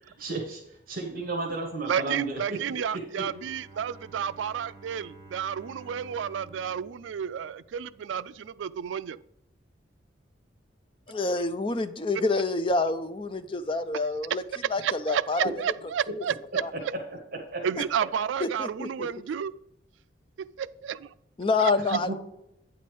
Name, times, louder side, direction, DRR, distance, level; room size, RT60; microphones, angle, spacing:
voice 1, 0.0-0.6 0.9-2.6 3.2-3.3 16.7-16.8 17.5-17.6 21.9-22.1, right 3 dB, 50° right, 0 dB, 1.5 m, -33 dB
voice 2, 1.9-9.2 14.8-16.4 16.8-16.9 17.6-19.5 20.6-21.1 21.6-21.7, right 8 dB, 85° right, 17 dB, 0.3 m, -31 dB
Bowed string instrument, 3.2-8.2, right 3 dB, 15° right, 1.1 m, -51 dB
voice 3, 11.1-14.4 14.7-15.5 16.6-16.7 18.4-19.1 21.4-22.1, left 3 dB, 30° left, 10 dB, 0.4 m, -27 dB
9.0 x 4.3 x 4.8 m, 0.83 s
head